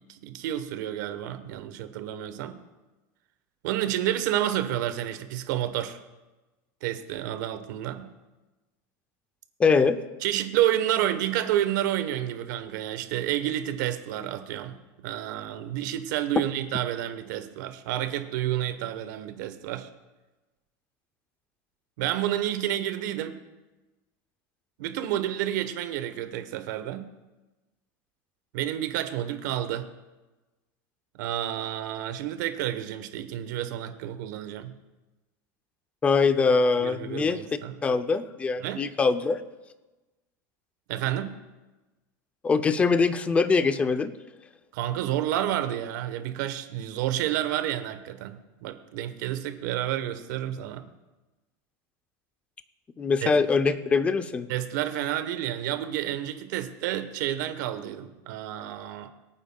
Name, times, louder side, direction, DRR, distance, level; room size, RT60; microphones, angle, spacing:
voice 1, 0.1-2.6 3.6-6.0 6.8-8.1 10.2-14.8 15.0-19.9 22.0-23.4 24.8-27.1 28.5-29.9 31.2-34.7 36.8-37.8 38.6-38.9 40.9-41.3 44.7-50.8 53.2-53.4 54.5-59.1, right 12 dB, 65° right, 9 dB, 1.1 m, -30 dB
voice 2, 9.6-10.0 36.0-37.4 37.8-39.4 42.4-44.1 53.0-54.5, left 4 dB, 10° left, 10 dB, 0.5 m, -23 dB
23.5 x 9.0 x 2.3 m, 1.1 s
supercardioid pair, 165°, 11 cm